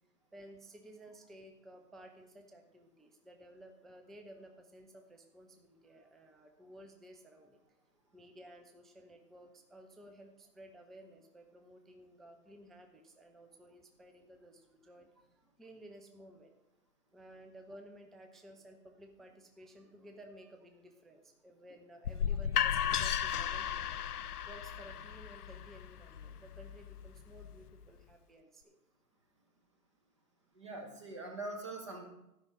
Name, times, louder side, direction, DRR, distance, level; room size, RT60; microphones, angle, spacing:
voice 1, 0.3-16.5 17.1-28.8, right 1 dB, ahead, 4 dB, 0.4 m, -55 dB
sound 1, 22.0-27.8, left 9 dB, 70° left, 0.5 m, -35 dB
voice 2, 30.5-32.0, right 2 dB, 20° right, 2 dB, 1.0 m, -43 dB
12.5 x 5.6 x 6.1 m, 0.88 s
hypercardioid pair, 170°, 48 cm